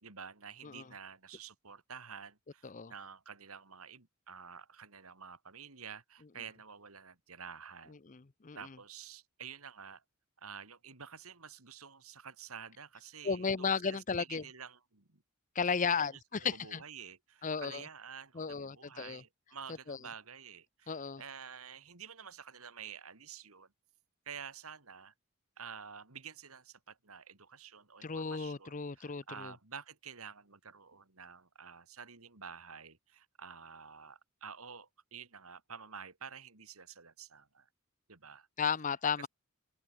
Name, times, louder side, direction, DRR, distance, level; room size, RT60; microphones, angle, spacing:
voice 1, 0.0-8.0 8.5-10.0 10.4-15.2 15.8-23.7 24.3-25.1 25.6-37.7 38.1-38.5 39.2-39.3, right 6 dB, 80° right, 2.7 m, -50 dB
voice 2, 8.1-8.8 13.2-14.4 15.5-16.8 17.4-17.9 18.3-19.2 19.9-20.0 20.9-21.2 28.0-29.5 38.6-39.3, left 5 dB, 35° left, 0.6 m, -34 dB
open air
head